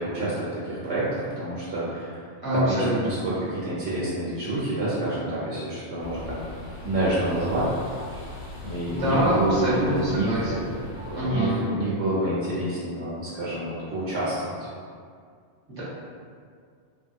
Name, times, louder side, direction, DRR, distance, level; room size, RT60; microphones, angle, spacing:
voice 1, 0.0-2.3 2.5-6.4 6.8-7.7 8.6-10.6 11.1-14.7, right 1 dB, 70° right, -10 dB, 0.9 m, -28 dB
voice 2, 2.4-3.1 8.9-10.7 11.1-11.7 15.7-15.8, equal, 20° right, -10 dB, 0.9 m, -25 dB
sound 1, 6.0-11.3, left 2 dB, 45° left, 0.6 m, -39 dB
2.9 x 2.2 x 2.5 m, 2.2 s
omnidirectional pair, 1.2 m